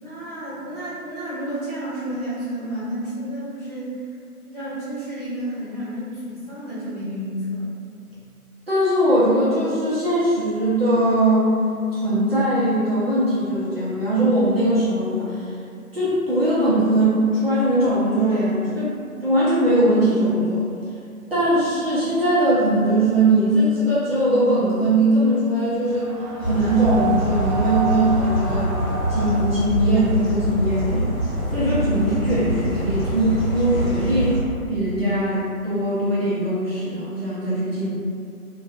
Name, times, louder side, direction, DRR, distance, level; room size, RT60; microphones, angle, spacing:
voice 1, 0.0-4.0 4.4-7.7, equal, 25° left, -15 dB, 1.1 m, -31 dB
voice 2, 8.7-11.5 11.9-15.5 15.9-19.0 19.2-20.6 21.3-26.1 26.4-28.7 29.1-31.2 31.5-34.4 34.7-37.9, right 1 dB, 40° right, -11 dB, 0.6 m, -20 dB
sound 1, 25.8-29.4, right 5 dB, 80° right, 0.6 m, -30 dB
sound 2, 26.4-34.4, equal, 65° left, 0.8 m, -24 dB
2.4 x 2.3 x 2.3 m, 2.3 s
figure-of-eight pair, 145°, 45 cm